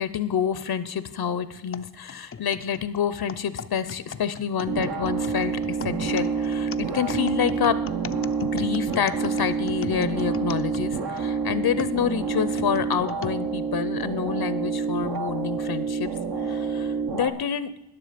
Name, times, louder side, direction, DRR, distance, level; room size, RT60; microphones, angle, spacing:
voice 1, 0.0-7.8 8.4-16.1 16.4-17.7, left 8 dB, 65° left, 15 dB, 0.7 m, -28 dB
sound 1, 1.7-11.3 11.8-13.4 14.0-14.1 15.0-15.2, left 7 dB, 35° left, 0.4 m, -39 dB
sound 2, 4.7-17.3, right 5 dB, 65° right, 1.7 m, -28 dB
20.0 x 7.1 x 5.1 m, 0.88 s
wide cardioid pair, 115°, 41 cm